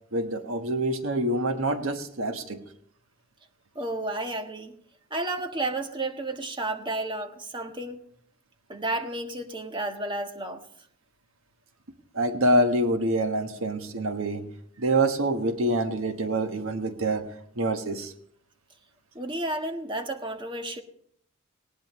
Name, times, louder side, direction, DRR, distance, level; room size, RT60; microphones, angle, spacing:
voice 1, 0.1-2.6 12.1-14.5 14.8-18.1, right 1 dB, 85° right, 7 dB, 1.4 m, -26 dB
voice 2, 3.7-4.8 5.1-8.0 8.7-10.7 19.1-20.8, right 2 dB, 25° right, 5 dB, 1.4 m, -32 dB
19.0 x 18.0 x 3.2 m, 0.64 s
head